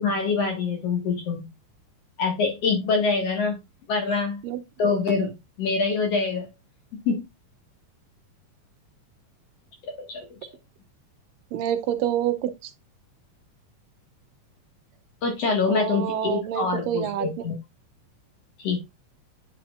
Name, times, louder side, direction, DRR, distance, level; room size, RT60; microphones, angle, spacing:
voice 1, 0.0-1.5 2.2-3.6 3.9-4.4 4.8-6.5 6.9-7.3 9.8-10.3 15.2-17.6 18.6-18.8, left 4 dB, 55° left, 2.4 m, -25 dB
voice 2, 11.5-12.7 15.7-17.3, right 10 dB, 85° right, 2.5 m, -27 dB
10.0 x 4.5 x 2.4 m
omnidirectional pair, 3.8 m